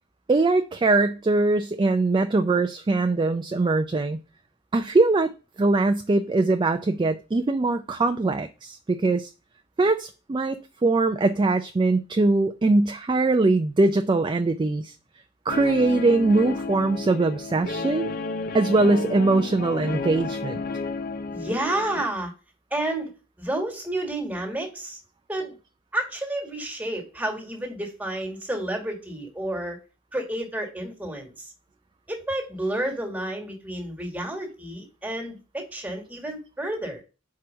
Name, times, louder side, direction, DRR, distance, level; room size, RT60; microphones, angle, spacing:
voice 1, 0.3-4.2 4.7-5.3 5.6-9.3 9.8-14.9 15.5-18.1 18.5-20.6, right 3 dB, 25° right, 0.3 m, -22 dB
Guitar, 15.5-22.0, left 3 dB, 50° left, 0.5 m, -32 dB
voice 2, 21.3-22.3 22.7-23.1 23.4-25.0 25.3-25.5 25.9-29.8 30.1-31.5 32.1-37.0, right 1 dB, 10° right, 1.6 m, -30 dB
4.7 x 4.6 x 6.1 m
head